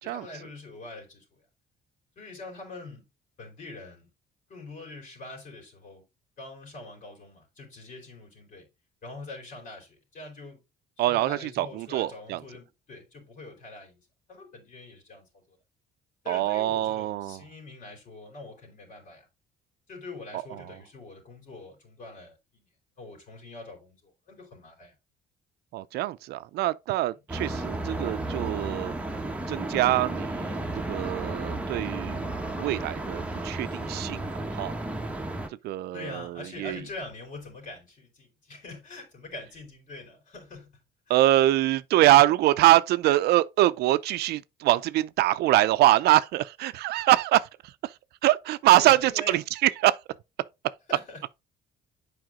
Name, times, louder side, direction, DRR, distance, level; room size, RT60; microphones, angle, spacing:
voice 1, 0.0-1.4 2.2-3.1 3.4-4.1 4.5-6.0 6.4-8.7 9.0-10.6 11.1-14.0 14.3-15.6 16.2-19.3 19.9-22.7 23.0-24.9 27.1-27.2 35.9-40.7 41.1-41.2 48.7-49.5 50.9-51.2, left 2 dB, 50° left, 4.2 m, -44 dB
voice 2, 11.0-12.4 16.3-17.4 25.7-28.9 29.5-32.3 32.6-34.2 34.5-34.7 35.6-36.8 41.1-47.5 47.8-47.9 48.2-50.0, right 15 dB, 75° right, 0.5 m, -24 dB
sound 1, 27.3-35.5, right 2 dB, 5° right, 1.3 m, -33 dB
7.8 x 4.9 x 3.7 m
cardioid pair, 110°, 17 cm